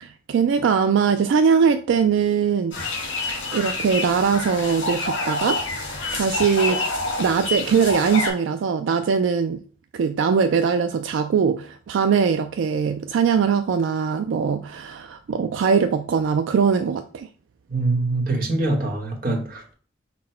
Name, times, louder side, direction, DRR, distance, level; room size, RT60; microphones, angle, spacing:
voice 1, 0.0-2.8 3.5-6.8 7.2-9.6 9.9-17.3, right 6 dB, 80° right, 0.3 m, -21 dB
sound 1, 2.7-8.3, left 3 dB, 85° left, 2.0 m, -27 dB
voice 2, 17.7-19.7, right 2 dB, 50° right, 1.0 m, -24 dB
5.8 x 2.1 x 4.3 m
head